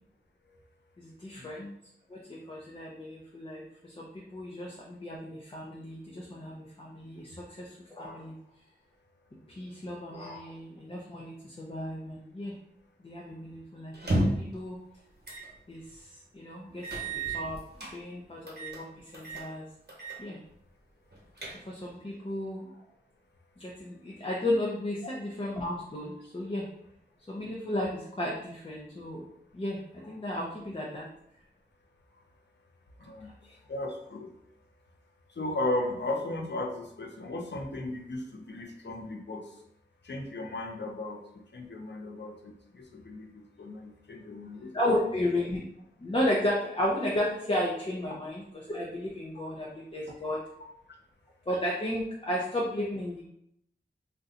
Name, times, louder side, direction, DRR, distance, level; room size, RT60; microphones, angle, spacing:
voice 1, 1.0-1.7 2.1-8.4 9.6-12.5 13.0-14.8 15.7-15.8 16.3-19.6 20.2-20.4 21.7-22.6 23.6-26.7 27.3-29.3 29.5-31.1 44.6-45.6 46.0-48.4 48.7-50.4 51.5-53.2, left 1 dB, 30° left, -3 dB, 0.5 m, -33 dB
sound 1, 13.9-14.5 15.2-15.5 15.9-16.0 16.8-17.9 18.5-18.8 19.1-19.5 19.9-20.2 20.5-20.6 21.1-21.9, right 1 dB, 65° right, 0.9 m, -32 dB
voice 2, 33.0-34.3 35.3-39.6 40.0-44.7, left 2 dB, 75° left, 2 dB, 0.6 m, -36 dB
2.7 x 2.2 x 3.7 m, 0.74 s
wide cardioid pair, 55°, 18 cm